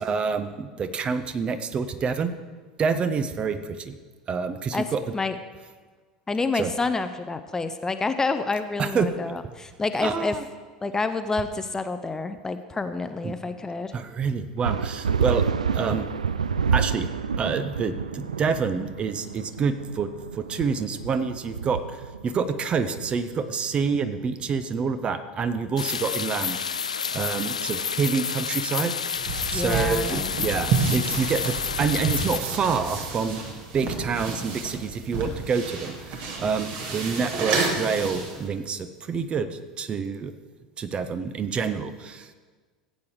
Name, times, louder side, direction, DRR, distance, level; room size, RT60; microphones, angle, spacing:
voice 1, 0.0-2.3 2.8-4.0 4.3-5.0 6.5-6.7 8.8-9.1 10.0-10.4 13.2-13.3 13.9-15.5 15.7-16.1 16.7-17.1 17.4-21.8 22.2-26.6 27.1-33.5 33.7-40.3 40.8-42.3, right 5 dB, 30° right, 11 dB, 0.7 m, -27 dB
voice 2, 6.3-10.4 10.8-13.9 15.3-15.4 29.5-30.3, left 3 dB, 15° left, 10 dB, 0.6 m, -28 dB
sound 1, 14.6-24.6, right 6 dB, 75° right, 0.4 m, -29 dB
sound 2, 25.8-32.4, left 6 dB, 80° left, 0.3 m, -29 dB
sound 3, 29.2-38.5, right 4 dB, 50° right, 1.9 m, -30 dB
15.0 x 8.5 x 4.7 m, 1.4 s
figure-of-eight pair, 75°, 4 cm